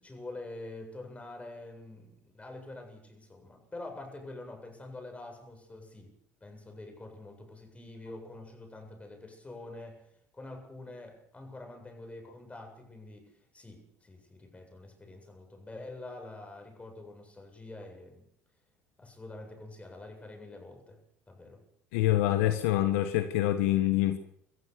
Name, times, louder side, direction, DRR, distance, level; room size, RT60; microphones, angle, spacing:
voice 1, 0.0-6.1 6.4-18.3 19.0-21.0 21.3-21.6, left 2 dB, 15° left, 3 dB, 7.8 m, -46 dB
voice 2, 21.9-24.2, left 14 dB, 70° left, 9 dB, 1.5 m, -26 dB
25.5 x 14.5 x 7.0 m, 0.69 s
hypercardioid pair, 70°, 7 cm